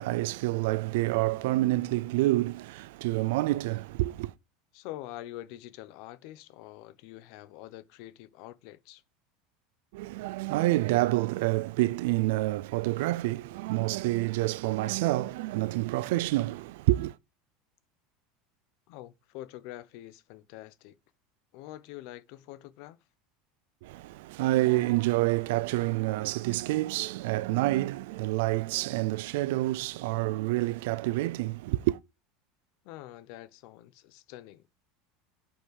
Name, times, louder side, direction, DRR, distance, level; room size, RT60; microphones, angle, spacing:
voice 1, 0.0-4.3 9.9-17.2 23.8-32.0, right 18 dB, 70° right, 0.5 m, -28 dB
voice 2, 4.7-9.0 18.9-21.0 21.5-23.0 32.8-34.6, left 15 dB, 50° left, 0.8 m, -45 dB
8.4 x 5.7 x 6.5 m
supercardioid pair, 175°, 0 cm